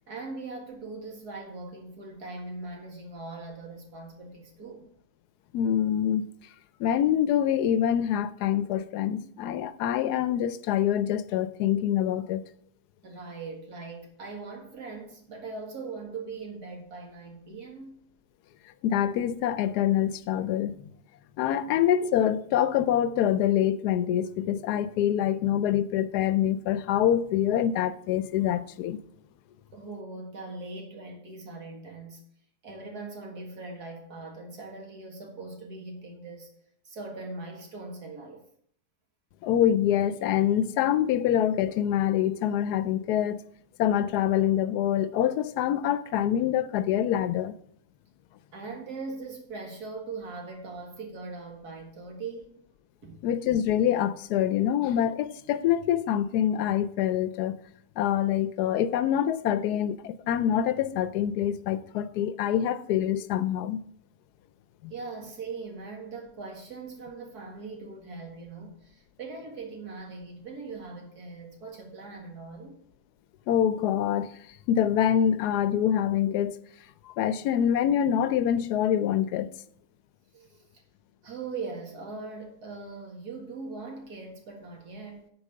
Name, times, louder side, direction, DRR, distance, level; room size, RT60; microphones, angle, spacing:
voice 1, 0.1-4.9 13.0-18.0 21.6-21.8 29.7-32.2 32.6-36.5 36.8-38.4 48.5-52.6 53.0-53.2 64.9-72.8 80.3-80.6 81.2-85.3, right 3 dB, 75° right, 2.3 m, -40 dB
voice 2, 5.5-6.3 6.8-12.4 18.8-20.9 21.4-29.0 39.4-43.4 43.8-47.5 53.2-57.6 58.0-63.8 64.8-64.9 73.5-74.3 74.7-76.6 77.1-79.5, left 10 dB, 85° left, 1.1 m, -25 dB
8.8 x 4.5 x 6.6 m
omnidirectional pair, 1.7 m